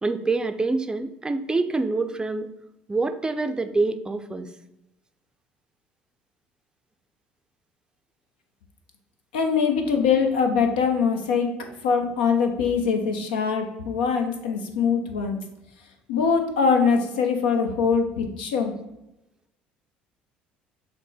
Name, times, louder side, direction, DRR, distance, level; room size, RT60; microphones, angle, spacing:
voice 1, 0.0-2.5 2.9-4.5, right 3 dB, 15° right, 8 dB, 0.4 m, -26 dB
voice 2, 9.3-11.5 11.8-15.4 16.1-18.7, left 6 dB, 85° left, 4 dB, 0.6 m, -23 dB
6.1 x 2.1 x 4.1 m, 0.89 s
hypercardioid pair, 65°, 5 cm